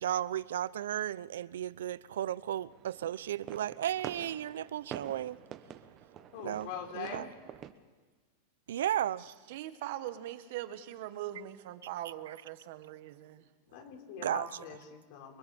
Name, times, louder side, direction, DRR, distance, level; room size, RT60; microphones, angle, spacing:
voice 1, 0.0-5.4 6.4-7.3 8.7-9.3 14.2-14.5, right 11 dB, 90° right, 0.6 m, -34 dB
sound 1, 2.7-7.7, right 10 dB, 35° right, 1.3 m, -47 dB
voice 2, 6.1-7.3 13.7-15.4, left 7 dB, 55° left, 4.7 m, -43 dB
voice 3, 9.2-13.4, right 13 dB, 65° right, 1.5 m, -41 dB
29.5 x 24.5 x 4.4 m
supercardioid pair, 145°, 0 cm